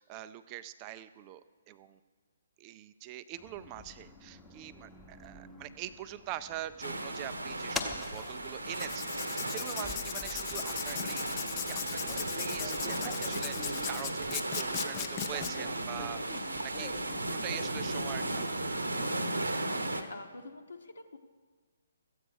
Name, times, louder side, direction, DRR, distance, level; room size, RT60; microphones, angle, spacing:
voice 1, 0.0-1.4 1.7-2.0 2.6-18.6, right 13 dB, 25° right, 12 dB, 0.4 m, -44 dB
sound 1, 3.4-19.1, left 3 dB, 10° left, 1.0 m, -47 dB
sound 2, 6.8-20.0, right 2 dB, 75° right, 1.0 m, -36 dB
Writing, 8.7-15.5, left 10 dB, 25° left, 0.7 m, -38 dB
voice 2, 19.7-21.2, left 2 dB, 65° left, 5 dB, 1.0 m, -47 dB
14.0 x 8.9 x 6.2 m, 1.5 s
figure-of-eight pair, 130°, 0 cm